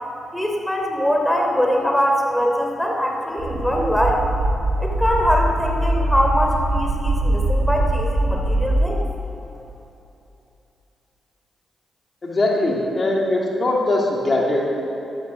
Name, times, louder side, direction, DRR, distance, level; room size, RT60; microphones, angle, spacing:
voice 1, 0.3-4.2 4.8-9.0, equal, 5° left, 0 dB, 3.1 m, -22 dB
sound 1, 3.4-8.7, right 1 dB, 85° right, 3.2 m, -22 dB
voice 2, 12.2-14.6, left 2 dB, 40° left, -2 dB, 2.9 m, -21 dB
13.0 x 12.5 x 6.9 m, 3.0 s
supercardioid pair, 55°, 0 cm